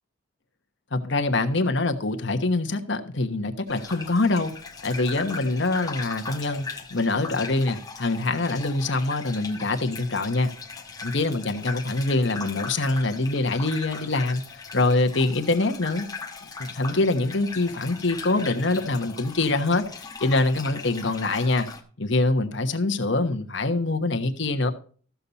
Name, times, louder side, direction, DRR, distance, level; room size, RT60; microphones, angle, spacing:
voice 1, 0.9-4.5 4.8-10.5 11.0-14.4 14.7-16.1 16.6-21.7 22.0-24.7, left 2 dB, 60° left, 1.1 m, -24 dB
sound 1, 3.7-21.8, left 4 dB, 20° left, 1.2 m, -39 dB
14.0 x 7.0 x 4.1 m
head